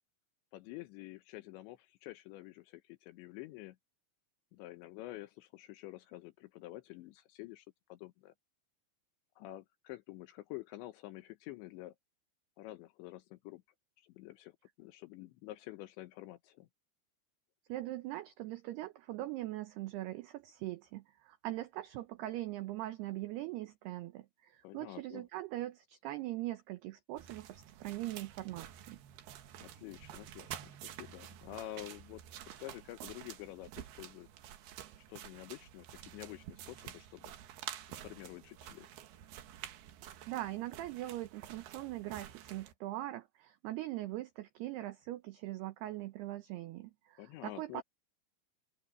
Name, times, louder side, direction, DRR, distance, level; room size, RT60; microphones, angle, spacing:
voice 1, 0.5-3.8 4.5-8.3 9.4-12.0 12.6-13.6 14.0-16.7 24.6-25.3 29.6-34.3 35.1-37.3 37.9-38.9 47.2-47.8, left 17 dB, 75° left, 2.8 m, -49 dB
voice 2, 17.7-29.0 40.3-47.8, right 16 dB, 85° right, 2.3 m, -41 dB
sound 1, 27.2-42.7, right 11 dB, 65° right, 2.8 m, -50 dB
open air
omnidirectional pair, 5.8 m